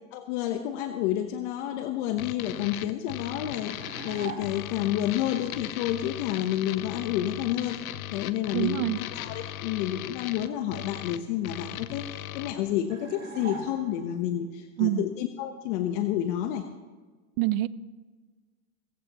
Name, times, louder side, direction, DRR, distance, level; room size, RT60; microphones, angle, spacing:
voice 1, 0.1-16.7, left 12 dB, 55° left, 7 dB, 1.1 m, -30 dB
sound 1, 2.2-12.5, left 13 dB, 70° left, 0.9 m, -38 dB
sound 2, 3.7-4.8 12.9-14.2, right 4 dB, 25° right, 3.4 m, -40 dB
voice 2, 8.5-9.0 14.8-15.1 17.4-17.7, right 15 dB, 45° right, 18 dB, 0.6 m, -25 dB
17.5 x 15.5 x 3.0 m, 1.4 s
hypercardioid pair, 120°, 43 cm